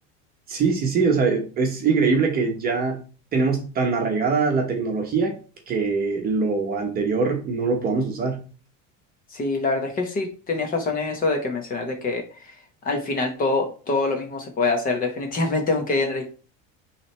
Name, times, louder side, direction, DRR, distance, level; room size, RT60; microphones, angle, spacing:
voice 1, 0.5-3.0 3.3-5.3 5.7-8.4, right 4 dB, 25° right, 2 dB, 1.1 m, -23 dB
voice 2, 9.3-12.5 12.8-16.2, left 3 dB, 25° left, 3 dB, 1.1 m, -25 dB
8.7 x 3.4 x 3.3 m, 0.36 s
cardioid pair, 165°, 37 cm